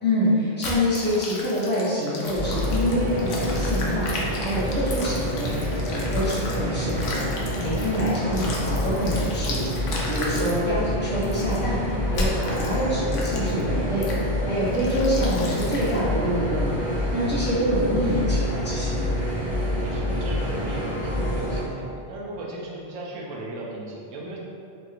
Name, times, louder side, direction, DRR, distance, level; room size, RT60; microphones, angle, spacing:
voice 1, 0.0-11.8 12.1-14.1 14.4-16.8 17.1-19.1, equal, 15° left, -9 dB, 0.5 m, -26 dB
sound 1, 0.6-6.6 6.9-10.6 11.2-11.6 12.1-12.7 13.1-13.6 14.0-14.2 14.7-16.0, left 2 dB, 90° left, 0.9 m, -34 dB
sound 2, 2.3-21.6, equal, 35° right, 1.3 m, -27 dB
voice 2, 19.8-24.4, right 1 dB, 90° right, -3 dB, 0.9 m, -37 dB
3.1 x 2.9 x 2.4 m, 2.5 s
omnidirectional pair, 1.2 m